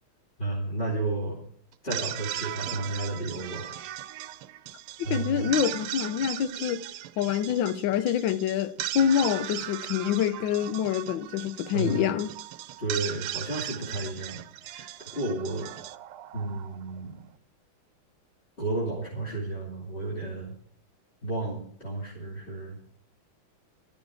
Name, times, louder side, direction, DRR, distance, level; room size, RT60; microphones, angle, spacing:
voice 1, 0.4-1.4 1.8-3.8 5.0-5.6 11.7-12.1 12.8-14.4 14.7-15.7 16.3-17.2 18.6-20.5 21.2-22.8, right 2 dB, 25° left, 3.1 m, -32 dB
sound 1, 1.7-17.0, right 12 dB, 85° right, 1.6 m, -37 dB
voice 2, 5.1-6.8 7.2-12.3, left 9 dB, 70° left, 1.4 m, -26 dB
14.5 x 12.5 x 4.8 m
omnidirectional pair, 2.3 m